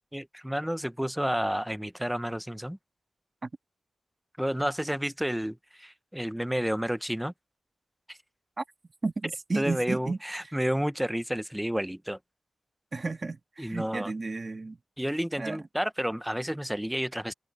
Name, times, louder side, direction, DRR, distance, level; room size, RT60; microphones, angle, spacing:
voice 1, 0.1-2.8 4.4-7.3 8.1-8.2 9.6-12.2 13.6-14.1 15.0-17.3, equal, 5° right, 0.8 m, -30 dB
voice 2, 9.0-10.2 10.4-10.6 12.9-14.8 15.4-15.6, right 3 dB, 30° right, 1.8 m, -33 dB
wide cardioid pair, 150°, 0 cm